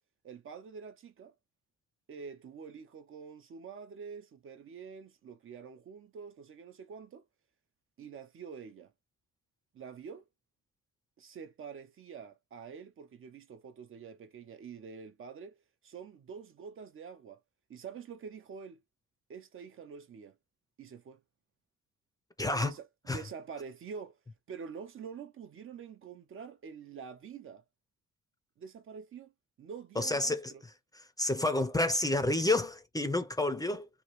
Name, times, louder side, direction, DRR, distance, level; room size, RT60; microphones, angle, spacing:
voice 1, 0.2-1.3 2.1-7.3 8.0-8.9 9.7-10.3 11.2-17.4 17.7-18.8 19.3-20.4 20.8-21.2 22.6-24.2 24.5-27.6 28.6-29.3 29.6-30.6, right 6 dB, 45° right, 0.5 m, -46 dB
voice 2, 22.4-22.7 23.1-23.2 30.0-30.5 31.2-33.9, left 2 dB, 10° left, 0.5 m, -29 dB
3.0 x 2.3 x 3.0 m
cardioid pair, 90°, 30 cm